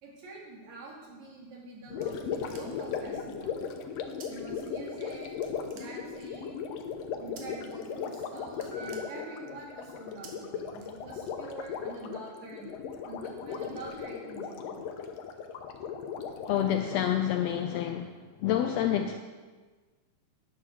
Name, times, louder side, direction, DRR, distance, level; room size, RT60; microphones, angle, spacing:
voice 1, 0.0-3.7 4.3-5.4 5.7-6.6 7.2-12.7 13.0-14.8, right 2 dB, 65° right, -3 dB, 3.7 m, -45 dB
sound 1, 1.5-3.0 4.2-4.3 4.6-5.1 5.4-6.4 7.4-7.8 8.1-8.2 8.5-9.7 10.2-10.3 10.8-11.4, right 6 dB, 90° right, 3.0 m, -52 dB
Gurgling, 1.9-17.2, left 6 dB, 70° left, 1.8 m, -37 dB
Piano, 8.7-10.8, right 3 dB, 45° left, 2.1 m, -50 dB
voice 2, 16.5-18.2 18.4-19.2, left 10 dB, 85° left, 6 dB, 1.4 m, -28 dB
9.8 x 9.5 x 6.3 m, 1.4 s
omnidirectional pair, 3.5 m